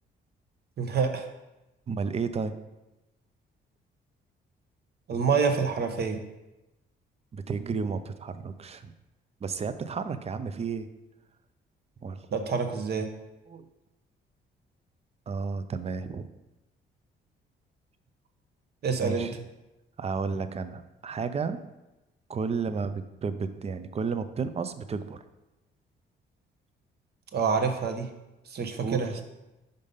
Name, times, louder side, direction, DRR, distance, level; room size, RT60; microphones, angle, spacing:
voice 1, 0.8-1.3 5.1-6.2 12.3-13.1 18.8-19.3 27.3-28.1 28.5-29.2, right 5 dB, 55° right, 6 dB, 0.9 m, -27 dB
voice 2, 1.9-2.5 7.3-8.9 9.4-10.9 12.0-12.2 13.5-13.7 15.3-16.3 19.0-19.4 20.0-21.6 22.3-25.2 28.8-29.2, right 5 dB, 30° right, 11 dB, 0.5 m, -32 dB
5.4 x 5.3 x 5.2 m, 0.98 s
cardioid pair, 90°, 20 cm